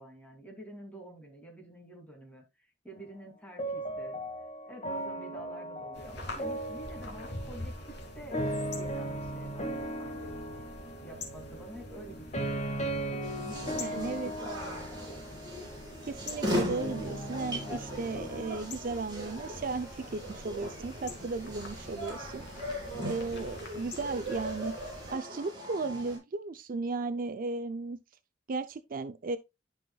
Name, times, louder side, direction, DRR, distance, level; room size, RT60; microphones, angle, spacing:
voice 1, 0.0-4.2 4.7-10.3 11.0-15.2, right 1 dB, 10° left, 2.7 m, -49 dB
sound 1, 3.6-18.6, right 1 dB, 40° left, 1.7 m, -38 dB
sound 2, 5.9-25.2, left 1 dB, 65° left, 2.4 m, -46 dB
sound 3, 13.2-26.2, equal, 25° right, 4.7 m, -39 dB
voice 2, 13.6-14.3 16.1-22.5 23.0-24.7 25.1-28.0 28.5-29.4, right 3 dB, 50° right, 0.5 m, -35 dB
12.0 x 5.5 x 2.3 m
head